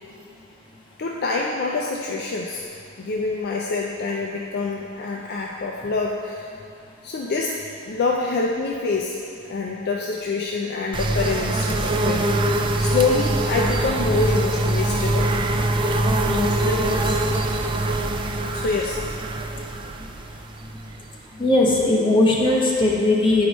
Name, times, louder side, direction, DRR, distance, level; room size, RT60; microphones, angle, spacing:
voice 1, 1.0-2.7 3.0-6.5 7.0-7.5 7.9-9.2 9.5-12.3 12.8-15.3 16.2-17.1 18.5-19.0, left 3 dB, 50° left, -1 dB, 0.4 m, -26 dB
sound 1, 10.9-21.6, right 1 dB, 25° right, 0.3 m, -23 dB
voice 2, 21.3-23.5, left 2 dB, 25° left, -5 dB, 1.1 m, -19 dB
10.0 x 4.7 x 3.1 m, 2.4 s
head